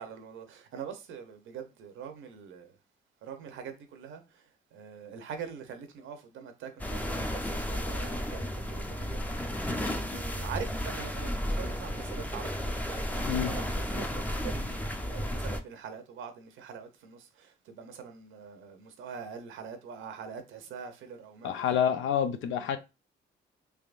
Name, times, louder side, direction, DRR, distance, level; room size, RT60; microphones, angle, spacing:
voice 1, 0.0-2.8 3.2-21.6, right 7 dB, 80° right, 0.8 m, -44 dB
sound 1, 6.8-15.6, equal, 10° left, 0.5 m, -33 dB
voice 2, 21.4-22.8, left 9 dB, 80° left, 0.6 m, -28 dB
3.5 x 3.1 x 2.5 m
cardioid pair, 90°, 20 cm